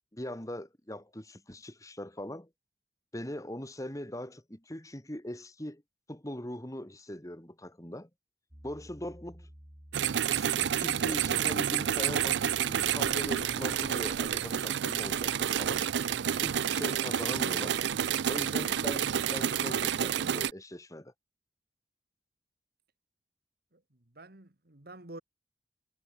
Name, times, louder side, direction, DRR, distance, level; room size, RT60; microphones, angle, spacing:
voice 1, 0.1-2.5 3.1-5.8 6.1-8.1 8.6-9.5 10.1-15.8 16.4-17.8 18.3-21.1, left 1 dB, 20° left, 2.6 m, -41 dB
Piano, 8.5-16.2, equal, 25° right, 3.9 m, -55 dB
sound 1, 9.9-20.5, right 9 dB, 80° right, 0.4 m, -29 dB
voice 2, 24.1-25.2, right 2 dB, 60° right, 2.0 m, -48 dB
head